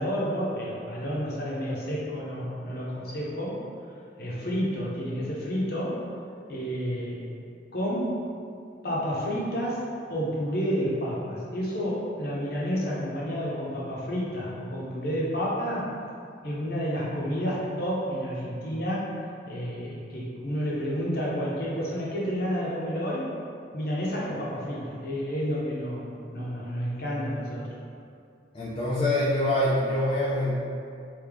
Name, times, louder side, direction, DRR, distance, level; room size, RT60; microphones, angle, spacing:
voice 1, 0.0-3.6 4.2-6.0 6.5-7.2 7.7-8.2 8.8-15.9 16.4-19.1 19.5-23.3 23.7-27.7, equal, 55° left, -6 dB, 0.8 m, -30 dB
voice 2, 28.5-30.6, left 1 dB, 30° left, -8 dB, 0.4 m, -25 dB
3.3 x 2.7 x 3.6 m, 2.4 s
head